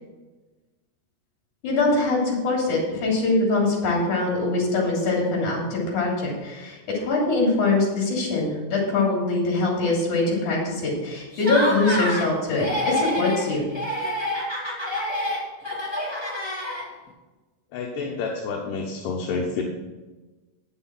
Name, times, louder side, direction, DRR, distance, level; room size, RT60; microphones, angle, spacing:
voice 1, 1.6-13.6, left 2 dB, 70° left, -2 dB, 4.5 m, -23 dB
Laughter, 11.3-12.3 12.6-13.4 13.7-17.1, left 1 dB, 10° left, 1.2 m, -27 dB
voice 2, 17.7-19.6, left 4 dB, 85° left, 0 dB, 2.6 m, -29 dB
9.0 x 7.8 x 6.0 m, 1.2 s
omnidirectional pair, 3.7 m